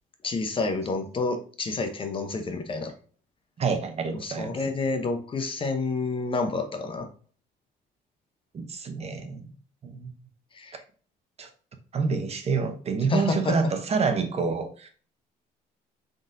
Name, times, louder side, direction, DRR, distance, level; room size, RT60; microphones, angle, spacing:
voice 1, 0.2-2.9 4.2-7.1 10.5-10.8 13.1-13.5, left 3 dB, 30° left, 0.7 m, -29 dB
voice 2, 3.6-4.5 8.5-9.5 9.8-10.1 11.4-11.5 11.9-14.9, right 5 dB, 40° right, 0.7 m, -27 dB
3.9 x 3.8 x 2.6 m
cardioid pair, 110°, 17 cm